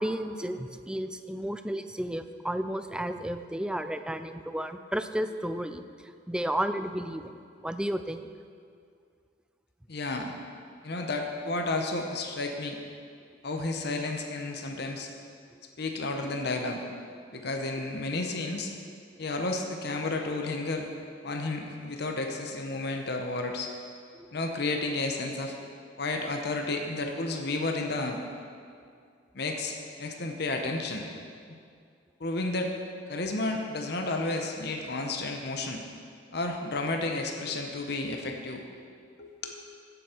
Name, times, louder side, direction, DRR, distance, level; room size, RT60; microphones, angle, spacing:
voice 1, 0.0-8.3 24.1-24.3, right 1 dB, 5° right, 9 dB, 0.4 m, -33 dB
voice 2, 9.9-10.3 10.8-12.8 13.4-15.1 15.8-16.8 17.3-18.7 19.2-20.9 21.2-23.7 24.3-25.5 26.0-28.2 29.3-31.1 32.2-32.7 33.1-35.8 36.3-38.6 39.2-39.5, left 2 dB, 60° left, 3 dB, 0.9 m, -32 dB
16.0 x 7.9 x 4.4 m, 2.2 s
head